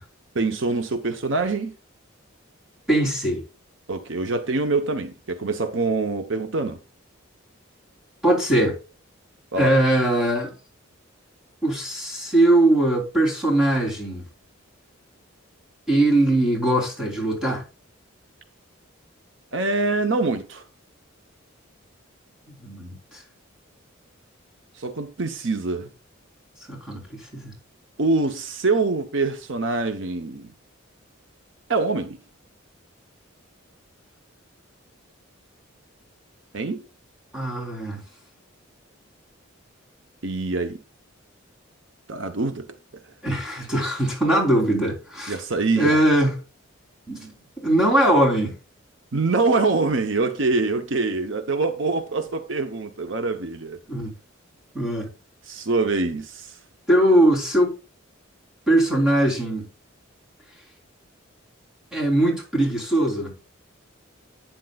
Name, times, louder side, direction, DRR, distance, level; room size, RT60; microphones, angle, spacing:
voice 1, 0.3-1.7 3.9-6.8 9.5-9.7 19.5-20.6 24.7-25.9 28.0-30.5 31.7-32.2 36.5-36.8 40.2-40.8 42.1-42.7 45.3-46.0 49.1-53.8 55.5-56.6, right 3 dB, 60° right, 0.9 m, -24 dB
voice 2, 2.9-3.4 8.2-8.8 9.6-10.5 11.6-14.2 15.9-17.6 22.6-23.2 26.7-27.0 27.3-27.5 37.3-38.0 43.2-45.4 45.7-46.3 47.1-48.5 53.9-54.1 54.7-55.1 56.9-57.7 58.7-59.7 61.9-63.3, right 1 dB, 5° right, 3.5 m, -21 dB
12.0 x 9.0 x 2.4 m
head